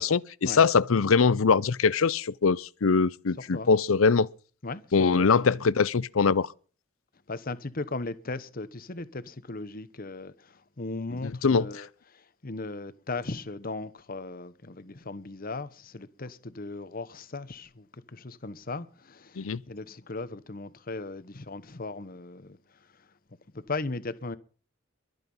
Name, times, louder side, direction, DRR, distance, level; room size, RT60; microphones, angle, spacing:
voice 1, 0.0-4.3 4.9-6.5 11.2-11.7 19.4-19.6, left 5 dB, 80° left, 0.6 m, -23 dB
voice 2, 4.6-5.8 7.3-23.1 23.5-24.4, left 3 dB, 45° left, 1.0 m, -38 dB
22.5 x 8.3 x 5.5 m
head